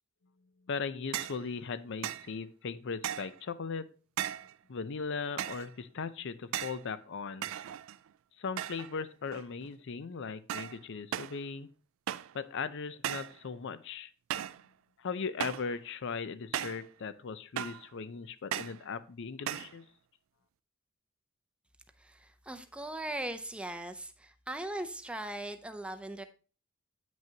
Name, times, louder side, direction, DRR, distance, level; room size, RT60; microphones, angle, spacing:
voice 1, 0.7-3.9 4.7-7.5 8.4-11.7 12.3-14.1 15.0-19.9, left 5 dB, 60° left, 14 dB, 0.5 m, -38 dB
sound 1, 1.1-1.4 2.0-2.3 3.0-3.4 4.2-4.5 5.4-5.7 6.5-6.8 7.4-8.1 8.6-9.0 9.3-9.7 10.5-10.8 11.1-11.4 12.1-12.4 13.0-13.4 14.3-14.6 15.4-15.7 16.5-16.9 17.6-17.9 18.5-18.8 19.5-19.8, right 11 dB, 65° right, 0.3 m, -37 dB
voice 2, 22.0-26.2, right 1 dB, 5° right, 7 dB, 0.5 m, -39 dB
8.9 x 6.2 x 2.8 m, 0.38 s
head